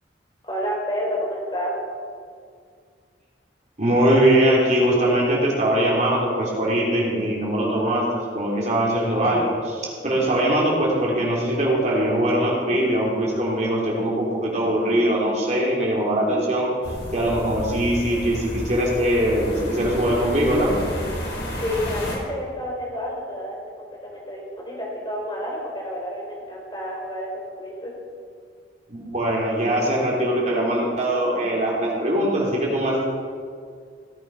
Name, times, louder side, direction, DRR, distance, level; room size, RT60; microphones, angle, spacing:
voice 1, 0.4-1.7 21.6-23.6 24.0-27.9, equal, 25° left, -3 dB, 3.8 m, -29 dB
voice 2, 3.8-16.7 17.1-20.7 28.9-33.0, right 1 dB, 40° right, -4 dB, 3.5 m, -21 dB
sound 1, 16.8-22.2, left 1 dB, 75° left, 3.5 m, -31 dB
17.5 x 8.7 x 5.5 m, 2.1 s
head